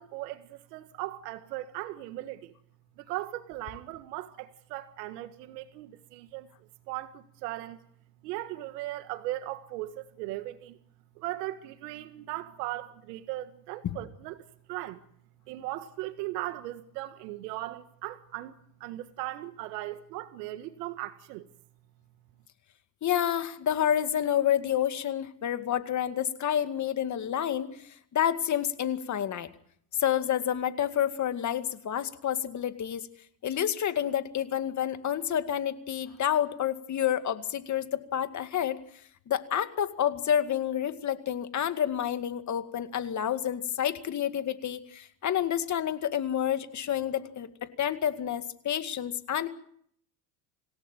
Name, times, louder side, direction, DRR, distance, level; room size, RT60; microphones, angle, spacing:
voice 1, 0.0-2.5 3.0-6.5 6.9-7.8 8.2-10.8 11.2-14.4 14.7-15.0 15.5-18.5 18.8-21.5, right 16 dB, 80° right, 1.8 m, -38 dB
voice 2, 23.0-29.5 30.0-33.1 33.4-38.8 39.3-47.5 47.8-49.5, left 10 dB, 35° left, 2.2 m, -29 dB
26.5 x 17.0 x 9.1 m
supercardioid pair, 110°, 47 cm